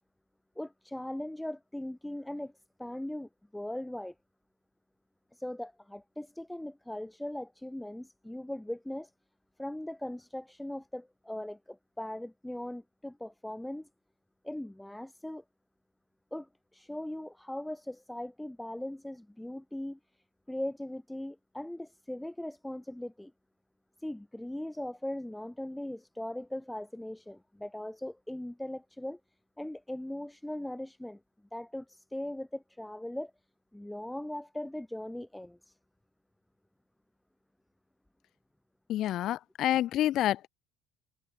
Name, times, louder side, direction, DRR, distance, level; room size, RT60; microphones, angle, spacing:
voice 1, 0.6-2.5 2.8-4.1 5.3-9.1 9.6-13.9 14.4-15.4 16.3-20.0 20.5-23.3 24.0-29.2 29.6-31.2 31.5-33.3 33.7-35.7, left 1 dB, 5° left, 1.0 m, -39 dB
voice 2, 38.9-40.5, left 13 dB, 60° left, 0.3 m, -28 dB
cardioid pair, 105°, 0 cm